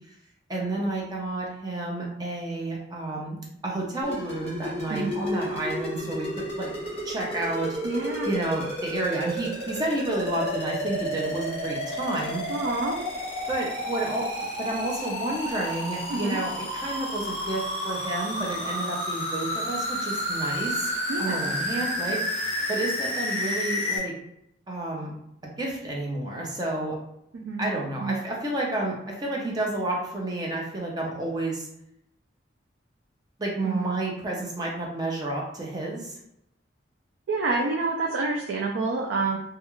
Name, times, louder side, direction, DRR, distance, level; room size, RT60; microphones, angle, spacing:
voice 1, 0.5-3.4 3.6-6.7 7.0-7.7 8.2-12.4 13.5-14.3 14.6-20.9 21.2-22.2 22.7-24.1 24.7-25.1 25.6-27.0 27.6-31.7 33.4-36.2, right 2 dB, 20° right, -2 dB, 0.5 m, -30 dB
sound 1, 4.0-24.0, equal, 30° left, 0.8 m, -31 dB
voice 2, 7.8-8.3 12.5-13.0 16.1-16.4 21.1-21.5 27.3-27.7 28.0-28.2 33.6-33.9 37.3-39.4, right 3 dB, 75° right, 0 dB, 0.3 m, -28 dB
2.3 x 2.3 x 3.0 m, 0.78 s
head